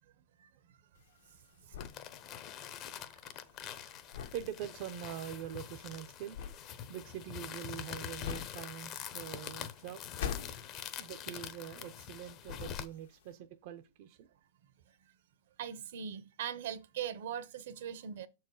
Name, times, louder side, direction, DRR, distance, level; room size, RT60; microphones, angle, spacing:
sound 1, 1.0-12.2 12.4-13.3, left 8 dB, 70° left, 1.3 m, -44 dB
sound 2, 1.8-12.9, left 9 dB, 30° left, 0.8 m, -45 dB
voice 1, 4.3-6.4 6.9-10.0 11.0-14.3, right 10 dB, 45° right, 0.6 m, -44 dB
voice 2, 15.6-18.3, right 9 dB, 65° right, 0.9 m, -40 dB
6.8 x 4.6 x 4.8 m
supercardioid pair, 155°, 0 cm